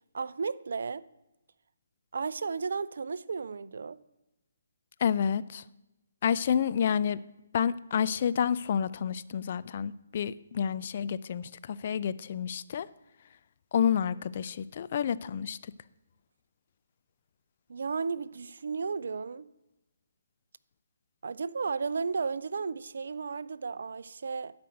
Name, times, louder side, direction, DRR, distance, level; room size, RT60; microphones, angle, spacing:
voice 1, 0.1-1.0 2.1-4.0 17.7-19.5 21.2-24.5, right 5 dB, 65° right, 0.4 m, -34 dB
voice 2, 5.0-5.6 6.2-7.2 7.5-12.9 13.7-15.6, left 8 dB, 45° left, 0.4 m, -29 dB
12.0 x 5.2 x 7.8 m
figure-of-eight pair, 145°, 0 cm